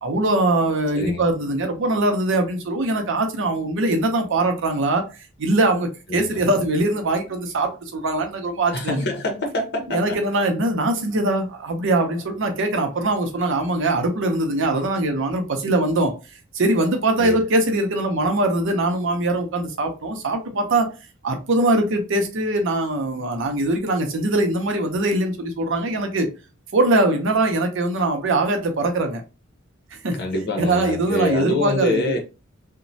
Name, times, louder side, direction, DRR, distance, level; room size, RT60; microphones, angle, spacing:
voice 1, 0.0-5.1 5.4-9.0 9.9-16.1 16.5-20.9 21.2-26.3 26.7-29.2 30.0-30.2 30.6-32.2, right 2 dB, 65° right, 0.6 m, -22 dB
voice 2, 0.9-1.3 6.1-6.4 8.7-10.2 17.2-17.4 30.1-32.2, left 1 dB, 55° left, 0.8 m, -26 dB
3.0 x 2.1 x 2.6 m
head